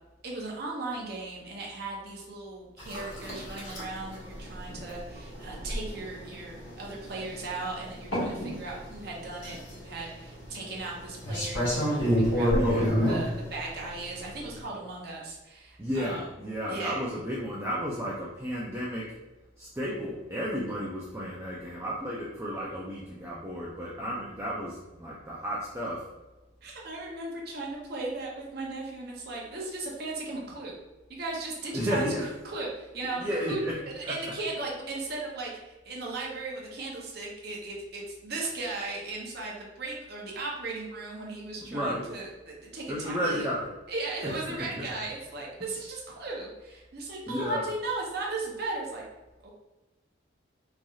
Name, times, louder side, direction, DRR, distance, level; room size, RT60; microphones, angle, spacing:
voice 1, 0.2-16.3 16.7-17.0 26.6-30.8 31.1-33.2 33.5-33.6 33.9-43.5 43.9-49.0 49.4-49.5, right 3 dB, 55° right, -2 dB, 0.6 m, -37 dB
sound 1, 2.8-14.6, equal, 85° left, 1.5 m, -31 dB
voice 2, 11.9-13.1 15.8-19.1 19.6-26.1 31.7-32.2 33.2-33.7 34.1-34.2 41.6-42.0 42.9-43.7 44.2-44.4 44.8-44.9 47.3-47.6, equal, 15° right, -6 dB, 0.3 m, -33 dB
3.1 x 2.6 x 2.3 m, 1.1 s
head